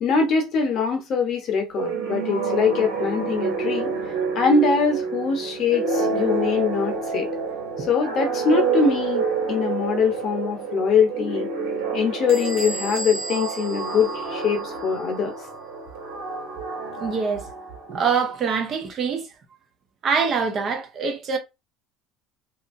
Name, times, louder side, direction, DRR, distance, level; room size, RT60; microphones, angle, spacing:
voice 1, 0.0-3.9 4.3-7.3 7.8-11.5 11.9-15.4, left 5 dB, 40° left, 0.7 m, -23 dB
sound 1, 1.7-18.1, right 4 dB, 90° right, 1.7 m, -28 dB
Bell / Squeak, 12.3-14.8, right 1 dB, 65° right, 1.0 m, -35 dB
voice 2, 17.0-17.4 17.9-19.3 20.0-21.4, right 5 dB, 35° right, 0.6 m, -24 dB
2.8 x 2.5 x 2.5 m
cardioid pair, 155°, 0 cm